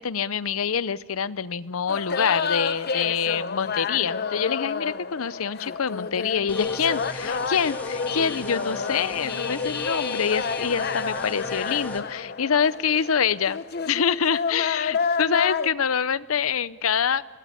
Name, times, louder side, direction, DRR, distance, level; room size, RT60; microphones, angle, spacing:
voice 1, 0.0-13.6 13.9-17.2, left 7 dB, 85° left, 17 dB, 0.7 m, -26 dB
sound 1, 1.9-15.7, left 5 dB, 50° left, 0.8 m, -29 dB
sound 2, 6.5-12.0, equal, 10° left, 1.7 m, -38 dB
25.5 x 18.5 x 8.6 m, 1.4 s
head